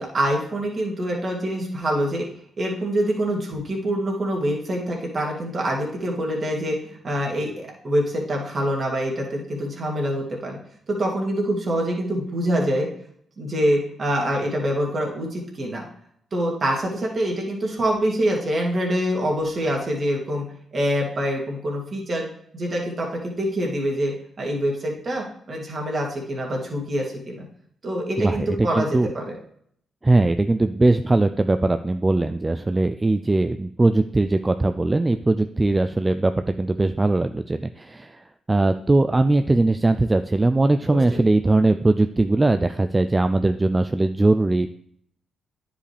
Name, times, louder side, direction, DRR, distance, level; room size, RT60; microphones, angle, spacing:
voice 1, 0.0-2.3 2.6-10.6 10.9-12.9 13.4-15.8 16.3-20.4 20.7-22.2 22.5-27.5 27.8-29.3 40.9-41.2, equal, 50° right, -1 dB, 2.3 m, -25 dB
voice 2, 28.2-29.1 30.0-36.3 36.6-44.7, right 2 dB, 20° right, 9 dB, 0.4 m, -20 dB
9.6 x 5.1 x 3.4 m, 0.66 s
supercardioid pair, 60°, 0 cm